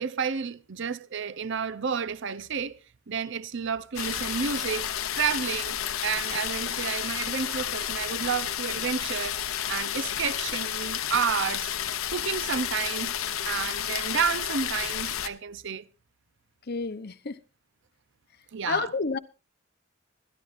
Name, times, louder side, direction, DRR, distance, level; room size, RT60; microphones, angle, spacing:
voice 1, 0.0-2.8 3.1-4.9 5.1-9.4 9.7-11.8 12.1-15.9 18.5-18.9, right 6 dB, 60° right, 0.7 m, -31 dB
sound 1, 4.0-15.3, left 10 dB, 85° left, 1.0 m, -31 dB
voice 2, 16.7-17.4 18.7-19.2, left 4 dB, 50° left, 0.8 m, -30 dB
25.5 x 11.0 x 2.6 m
head